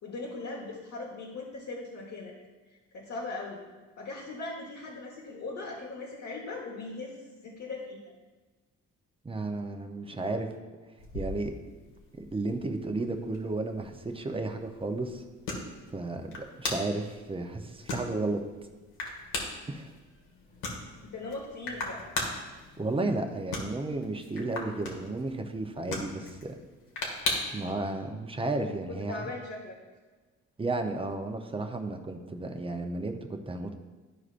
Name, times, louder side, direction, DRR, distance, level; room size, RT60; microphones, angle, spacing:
voice 1, 0.0-2.3 2.9-3.6 4.0-7.2 7.4-8.1 21.0-22.0 28.9-29.8, left 3 dB, 60° left, -4 dB, 1.4 m, -39 dB
voice 2, 9.2-10.5 11.1-11.5 12.1-15.2 15.9-18.4 19.7-19.9 22.8-26.5 27.5-29.3 30.6-33.7, right 2 dB, 20° right, 4 dB, 0.8 m, -33 dB
sound 1, 11.0-27.7, left 2 dB, 85° left, 1.6 m, -39 dB
12.5 x 4.8 x 2.6 m, 1.3 s
cardioid pair, 90°, 30 cm